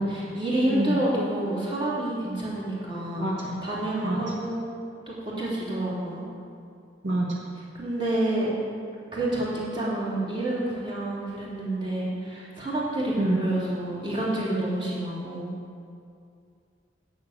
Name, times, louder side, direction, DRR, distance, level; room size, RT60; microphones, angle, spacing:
voice 1, 0.1-3.3 3.6-4.7 5.1-6.2 7.7-8.5 9.1-15.5, right 1 dB, 25° right, -7 dB, 3.3 m, -28 dB
voice 2, 3.2-3.6 4.0-4.2 7.0-7.4 13.2-13.4, right 1 dB, 70° right, -2 dB, 1.4 m, -26 dB
11.0 x 6.7 x 8.2 m, 2.4 s
head